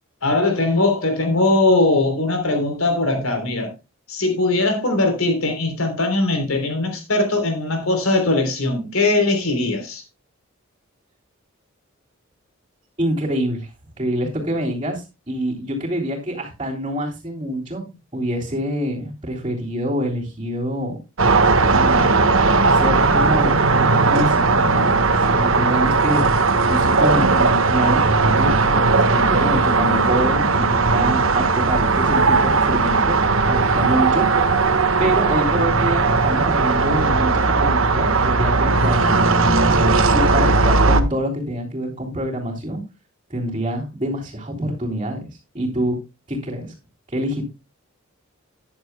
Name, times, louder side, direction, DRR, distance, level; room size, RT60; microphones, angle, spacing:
voice 1, 0.2-3.7 4.1-10.0, left 2 dB, 80° left, 3.4 m, -20 dB
voice 2, 13.0-13.7 14.0-17.8 18.1-21.0 21.7-22.2 22.7-25.0 25.3-26.3 26.7-33.2 33.5-34.3 35.0-42.8 43.3-45.2 45.5-46.0 46.3-46.7 47.1-47.4, equal, 25° right, 3.4 m, -26 dB
sound 1, 21.2-41.0, right 3 dB, 70° right, 1.4 m, -17 dB
14.0 x 10.5 x 2.2 m
head